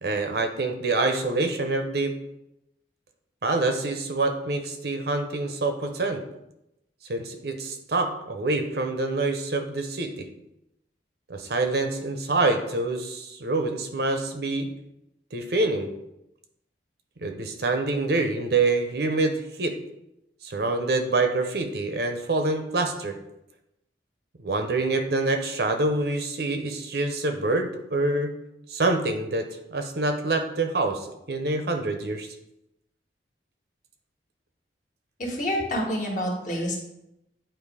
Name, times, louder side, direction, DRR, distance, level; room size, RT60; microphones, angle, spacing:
voice 1, 0.0-2.1 3.4-6.2 7.1-10.3 11.3-14.7 15.3-15.9 17.2-19.7 20.4-23.2 24.4-28.3 28.7-32.3, right 2 dB, 60° right, 6 dB, 0.7 m, -26 dB
voice 2, 35.2-36.8, equal, 45° left, -1 dB, 1.5 m, -27 dB
8.8 x 3.0 x 4.8 m, 0.86 s
head